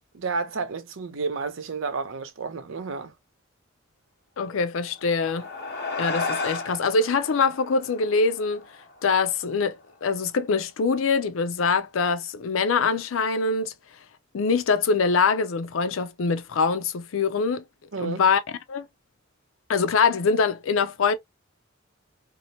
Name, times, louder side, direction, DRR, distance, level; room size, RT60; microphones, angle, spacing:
voice 1, 0.0-3.1 17.9-18.2, right 4 dB, 75° right, 0.6 m, -31 dB
voice 2, 4.4-5.5 6.0-8.7 9.0-13.7 14.3-17.6 18.0-18.4 18.7-18.9 19.7-21.1, left 4 dB, 85° left, 0.5 m, -24 dB
sound 1, 4.9-9.6, left 3 dB, 55° left, 1.0 m, -34 dB
2.8 x 2.0 x 2.8 m
head